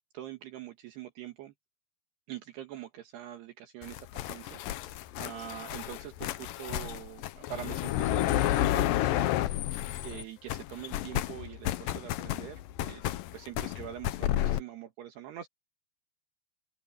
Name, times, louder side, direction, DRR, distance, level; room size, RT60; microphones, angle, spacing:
voice 1, 0.0-1.5 2.3-4.6 5.1-9.4 10.0-15.5, right 12 dB, 70° right, 3.4 m, -44 dB
sound 1, 3.8-10.2 10.5-14.6, left 13 dB, 85° left, 1.9 m, -31 dB
open air
omnidirectional pair, 5.1 m